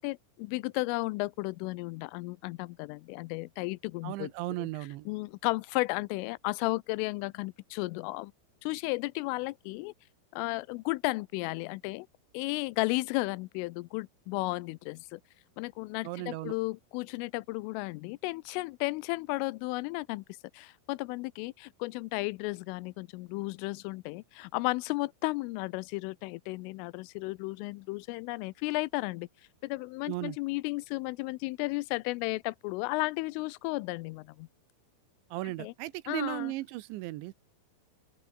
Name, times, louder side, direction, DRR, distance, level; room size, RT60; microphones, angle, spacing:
voice 1, 0.0-4.3 4.6-4.7 5.1-8.3 8.6-9.9 10.3-12.1 12.3-15.2 15.6-20.2 20.5-29.3 29.6-34.5 35.6-35.7 36.1-36.5, left 23 dB, 90° left, 3.2 m, -34 dB
voice 2, 4.0-5.1 16.0-16.6 30.1-30.4 35.3-37.3, right 18 dB, 75° right, 3.0 m, -36 dB
open air
omnidirectional pair, 5.7 m